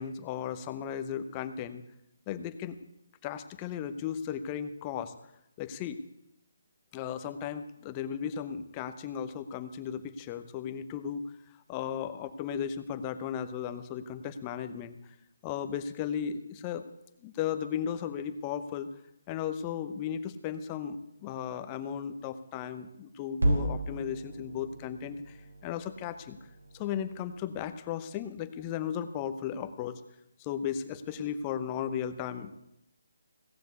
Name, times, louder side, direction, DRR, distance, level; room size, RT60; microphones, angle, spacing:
voice 1, 0.0-1.8 2.3-2.8 3.2-5.1 5.6-6.0 6.9-11.2 11.7-15.0 15.4-16.8 17.2-18.9 19.3-25.4 25.6-26.4 26.7-30.0 30.4-32.6, left 8 dB, 25° left, 9 dB, 0.9 m, -35 dB
sound 1, 23.4-27.7, right 1 dB, 85° right, 3.6 m, -34 dB
17.0 x 7.4 x 8.3 m, 0.83 s
figure-of-eight pair, 155°, 0 cm